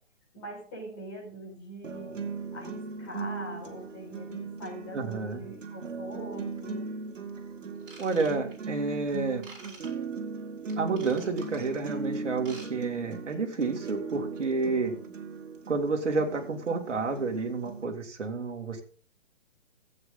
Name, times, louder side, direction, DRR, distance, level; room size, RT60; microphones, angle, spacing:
voice 1, 0.3-6.8, equal, 20° left, -4 dB, 5.4 m, -43 dB
sound 1, 1.8-17.8, right 4 dB, 85° right, 2.0 m, -38 dB
voice 2, 4.9-5.4 8.0-9.5 10.8-14.9 15.7-18.8, right 4 dB, 70° right, 3 dB, 2.5 m, -30 dB
Ratchet pawl / Tools, 7.8-8.7 9.4-9.9 10.7-11.6 12.3-12.7 12.9-13.1 13.6-13.7, right 3 dB, 45° right, 5.4 m, -48 dB
14.5 x 8.4 x 3.9 m, 0.42 s
hypercardioid pair, 170°, 37 cm